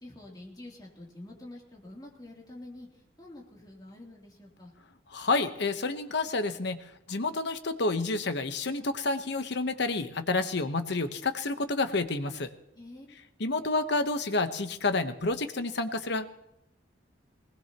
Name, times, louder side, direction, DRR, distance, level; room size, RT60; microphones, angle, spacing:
voice 1, 0.0-2.9 3.2-4.7 12.7-13.2, left 1 dB, 20° left, -3 dB, 3.1 m, -47 dB
voice 2, 5.1-6.8 7.1-12.5 13.4-16.3, left 3 dB, 65° left, 8 dB, 1.1 m, -29 dB
20.0 x 19.5 x 3.0 m, 0.79 s
head